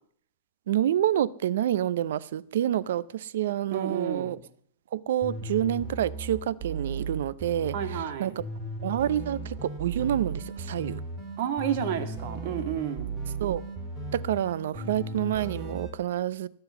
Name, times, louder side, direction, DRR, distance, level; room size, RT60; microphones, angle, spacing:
voice 1, 0.7-4.4 4.9-8.4 8.8-11.0 13.4-13.6 14.1-16.5, right 11 dB, 70° right, 0.5 m, -28 dB
voice 2, 3.7-4.4 7.7-8.3 11.4-13.1, right 9 dB, 50° right, 2.0 m, -31 dB
sound 1, 5.2-8.0 8.4-15.9, right 2 dB, 15° right, 3.1 m, -36 dB
20.0 x 7.9 x 7.0 m
supercardioid pair, 155°, 0 cm